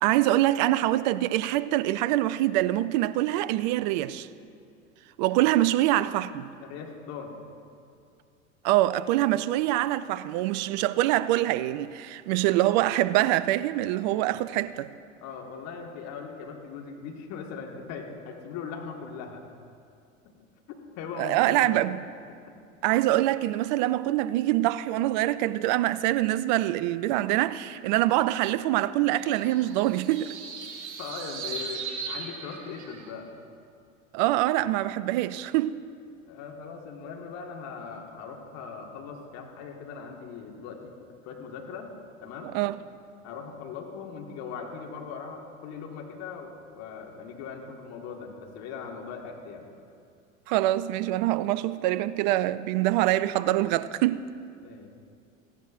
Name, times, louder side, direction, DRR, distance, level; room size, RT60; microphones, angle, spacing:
voice 1, 0.0-4.3 5.2-6.5 8.6-14.9 21.2-22.0 22.8-30.3 34.1-35.8 42.5-42.8 50.5-54.2, right 15 dB, 35° right, 0.4 m, -24 dB
voice 2, 6.6-7.4 15.2-19.5 20.7-21.9 22.3-22.6 31.0-33.3 36.3-40.9 41.2-41.9 42.2-42.6 43.2-49.7 54.6-55.0, left 5 dB, 40° left, 1.8 m, -40 dB
sound 1, 29.1-33.1, right 5 dB, 60° right, 1.8 m, -38 dB
17.0 x 14.5 x 2.6 m
figure-of-eight pair, 80°, 40 cm